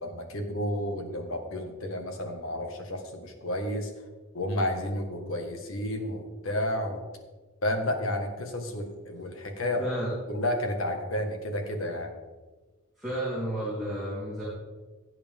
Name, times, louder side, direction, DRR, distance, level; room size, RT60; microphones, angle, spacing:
voice 1, 0.0-3.9 4.3-7.0 7.6-9.8 10.3-12.1, left 1 dB, 70° left, 4 dB, 1.7 m, -31 dB
voice 2, 9.8-10.1 13.0-14.4, right 1 dB, ahead, -10 dB, 3.7 m, -32 dB
17.0 x 8.2 x 3.7 m, 1.3 s
head